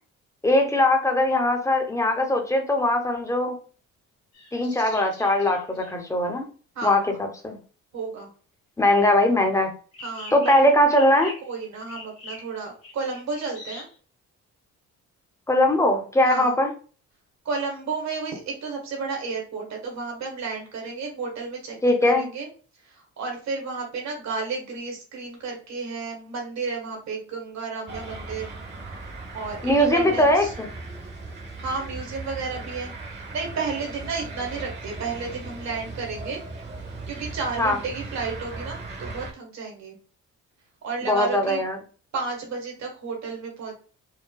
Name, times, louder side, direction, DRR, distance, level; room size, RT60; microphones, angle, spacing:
voice 1, 0.4-3.6 4.5-6.4 6.8-7.6 8.8-9.7 10.3-11.3 15.5-16.7 21.8-22.3 29.6-30.7 37.6-37.8 41.0-41.8, left 1 dB, 10° left, 3 dB, 0.9 m, -20 dB
sound 1, 4.3-6.0 9.9-11.6 11.9-14.0, left 2 dB, 50° left, 1.6 m, -43 dB
voice 2, 6.7-7.1 7.9-8.3 10.0-10.5 11.4-13.9 16.2-16.6 17.4-22.5 22.8-28.5 29.3-30.5 31.6-36.4 37.1-39.9 40.8-41.6 42.1-43.7, right 4 dB, 65° right, 0 dB, 1.7 m, -32 dB
sound 2, 27.9-39.3, right 3 dB, 35° right, 1.1 m, -38 dB
4.7 x 2.1 x 2.3 m, 0.39 s
cardioid pair, 90°, 30 cm